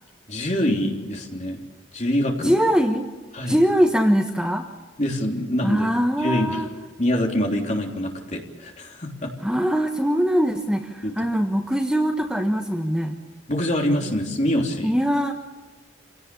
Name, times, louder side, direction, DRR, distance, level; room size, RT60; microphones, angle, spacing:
voice 1, 0.3-1.6 1.9-2.6 3.3-3.6 5.0-5.9 6.2-6.6 7.0-9.3 11.0-11.1 13.5-15.0, left 1 dB, 35° left, 1 dB, 3.4 m, -25 dB
voice 2, 2.4-3.1 3.5-4.7 5.6-6.7 9.4-13.1 14.8-15.3, equal, 5° right, 3 dB, 1.2 m, -22 dB
27.0 x 17.5 x 7.0 m, 1.2 s
head